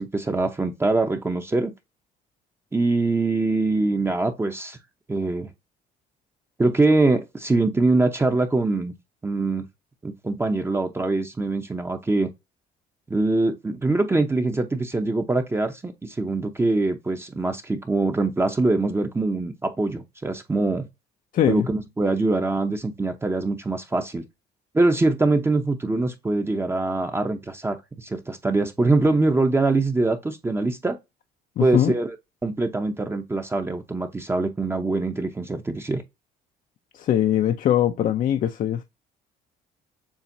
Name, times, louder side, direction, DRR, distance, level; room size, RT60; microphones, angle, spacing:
voice 1, 0.0-1.7 2.7-4.8 5.1-5.5 6.6-8.9 9.2-9.7 10.0-12.3 13.1-20.9 21.5-24.3 24.7-31.0 31.6-32.2 32.4-36.0, right 2 dB, 15° right, 0.7 m, -23 dB
voice 2, 21.3-21.7 31.6-31.9 36.9-38.8, left 11 dB, 50° left, 0.5 m, -21 dB
7.1 x 2.5 x 2.6 m
cardioid pair, 110°, 17 cm